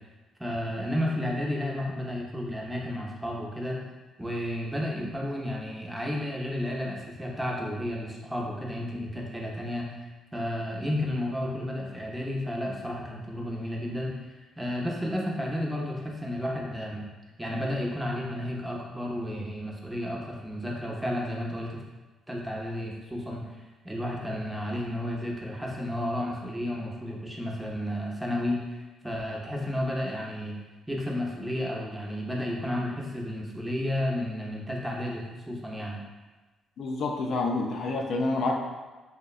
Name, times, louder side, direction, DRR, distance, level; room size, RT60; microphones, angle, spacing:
voice 1, 0.4-3.8 4.2-9.9 10.3-14.1 14.6-17.1 17.4-21.8 22.3-23.4 23.8-30.5 30.9-36.0, left 1 dB, 10° right, -2 dB, 0.5 m, -32 dB
voice 2, 36.8-38.5, left 3 dB, 65° left, 0 dB, 0.3 m, -28 dB
2.6 x 2.0 x 2.3 m, 1.2 s
cardioid pair, 75°, 0 cm